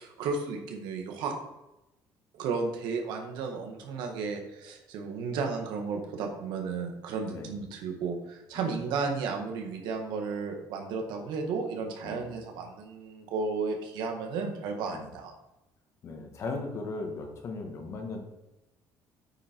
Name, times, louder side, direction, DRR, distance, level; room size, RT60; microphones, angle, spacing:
voice 1, 0.0-1.3 2.4-15.3, right 4 dB, 85° right, 3 dB, 1.8 m, -33 dB
voice 2, 7.3-7.6 8.5-8.7 12.0-12.4 14.9-15.1 16.0-18.3, left 3 dB, 40° left, 3 dB, 1.6 m, -38 dB
8.9 x 7.2 x 4.6 m, 0.94 s
cardioid pair, 170°, 8 cm